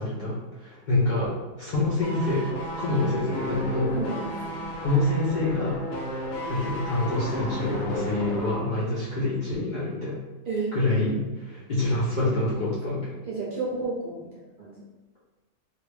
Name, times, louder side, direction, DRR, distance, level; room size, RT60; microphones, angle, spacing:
voice 1, 0.0-2.5 2.8-3.9 4.8-5.8 6.5-10.2 10.7-13.1, left 2 dB, 50° left, -8 dB, 0.5 m, -26 dB
sound 1, 2.0-8.7 9.0-9.1, equal, 90° left, 1.0 m, -33 dB
voice 2, 3.9-4.6 10.5-10.7 13.3-14.3 14.6-14.8, right 3 dB, 55° right, -6 dB, 0.6 m, -32 dB
2.4 x 2.2 x 3.2 m, 1.2 s
omnidirectional pair, 1.4 m